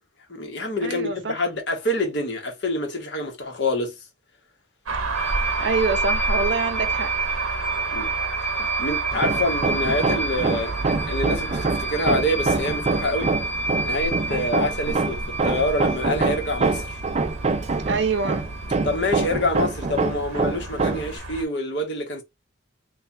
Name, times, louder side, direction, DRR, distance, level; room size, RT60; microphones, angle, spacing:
voice 1, 0.3-3.9 7.9-8.1 8.6-13.3 13.8-17.0 18.8-22.2, left 1 dB, 55° left, 1.2 m, -26 dB
voice 2, 0.8-1.4 5.6-7.1 8.6-8.7 14.3-14.5 17.8-18.5, right 4 dB, 55° right, 0.7 m, -26 dB
sound 1, 4.9-21.4, right 3 dB, 90° right, 0.9 m, -32 dB
sound 2, 5.1-19.3, right 3 dB, 10° left, 0.7 m, -30 dB
Hammer, 9.1-21.2, right 3 dB, 30° right, 0.3 m, -26 dB
3.3 x 2.3 x 4.1 m
head